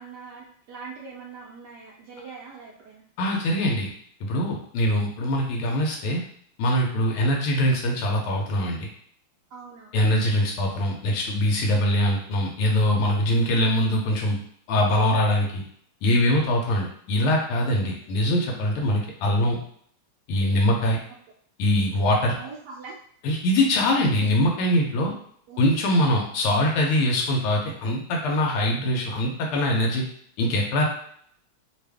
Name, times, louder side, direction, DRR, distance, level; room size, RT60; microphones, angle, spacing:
voice 1, 0.0-3.0 9.5-10.0 16.6-16.8 17.8-18.0 22.3-23.0 25.5-25.6, right 5 dB, 85° right, -4 dB, 0.9 m, -42 dB
voice 2, 3.2-3.9 4.2-6.2 6.6-8.9 9.9-14.4 14.7-15.6 16.0-19.6 20.3-21.0 21.6-22.4 23.2-25.1 25.6-30.0 30.4-30.9, left 1 dB, 90° left, -1 dB, 1.5 m, -23 dB
3.3 x 2.4 x 3.3 m, 0.64 s
omnidirectional pair, 2.4 m